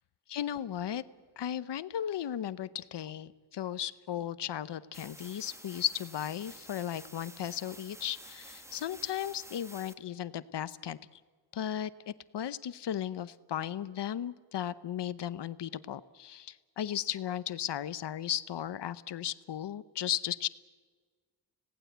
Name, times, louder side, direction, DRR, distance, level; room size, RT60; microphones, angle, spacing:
voice 1, 0.3-1.0 1.4-11.0 11.5-20.5, left 10 dB, 80° left, 16 dB, 0.8 m, -36 dB
sound 1, 4.9-9.9, right 1 dB, 5° right, 1.2 m, -50 dB
26.5 x 18.0 x 8.0 m, 1.5 s
wide cardioid pair, 150°, 41 cm